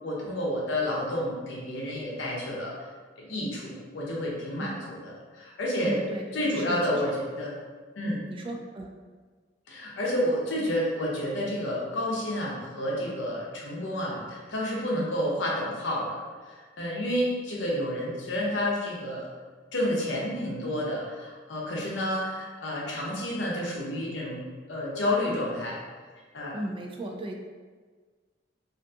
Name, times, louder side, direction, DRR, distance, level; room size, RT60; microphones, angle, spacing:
voice 1, 0.0-2.9 3.2-6.0 6.3-7.5 8.0-8.2 9.7-16.2 16.5-19.3 19.7-24.4 24.7-25.8 26.3-26.6, left 1 dB, 80° left, -3 dB, 0.7 m, -30 dB
voice 2, 5.8-6.2 6.5-7.1 8.0-8.9 14.2-14.3 26.5-27.3, right 1 dB, 30° right, 1 dB, 0.3 m, -35 dB
2.5 x 2.3 x 2.6 m, 1.5 s
head